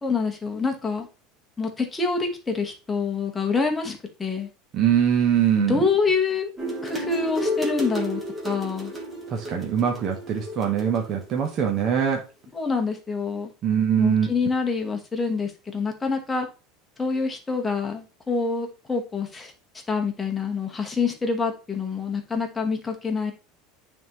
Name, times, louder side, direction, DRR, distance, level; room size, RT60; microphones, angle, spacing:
voice 1, 0.0-1.1 1.6-4.5 5.6-6.5 6.8-8.9 12.5-13.5 14.0-16.5 17.0-19.5 19.9-23.3, left 4 dB, 10° left, 2 dB, 1.1 m, -26 dB
voice 2, 4.7-5.8 9.3-12.2 13.6-14.3, right 8 dB, 35° right, 2 dB, 0.7 m, -22 dB
sound 1, 6.6-11.6, equal, 10° right, 1.4 m, -32 dB
9.2 x 3.5 x 3.0 m, 0.32 s
cardioid pair, 160°, 0 cm